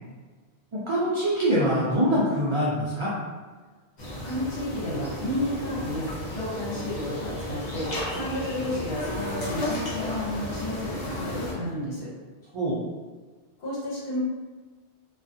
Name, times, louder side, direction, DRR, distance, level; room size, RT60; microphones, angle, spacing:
voice 1, 0.7-3.1 12.5-12.8, equal, 55° right, -7 dB, 0.3 m, -24 dB
sound 1, 4.0-11.5, left 1 dB, 50° left, 0.8 m, -34 dB
voice 2, 4.2-7.9 8.1-12.1 13.6-14.2, left 1 dB, 75° left, -7 dB, 1.1 m, -32 dB
sound 2, 4.5-9.8, equal, 70° right, 0.8 m, -42 dB
2.3 x 2.3 x 2.6 m, 1.4 s
omnidirectional pair, 1.1 m